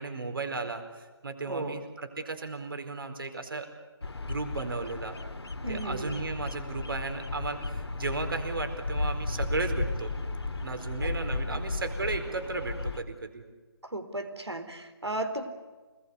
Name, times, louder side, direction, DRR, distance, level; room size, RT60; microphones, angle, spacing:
voice 1, 0.0-3.7 4.3-5.2 5.7-10.1 10.6-13.4, right 3 dB, 60° right, 6 dB, 4.5 m, -35 dB
voice 2, 1.5-1.8 5.6-6.2 11.0-11.1 11.5-11.6 13.8-15.5, right 1 dB, 90° right, 8 dB, 4.3 m, -35 dB
Bird vocalization bird call bird song, 4.0-13.0, left 2 dB, 75° left, 2.3 m, -34 dB
28.0 x 20.0 x 8.4 m, 1.3 s
figure-of-eight pair, 160°, 14 cm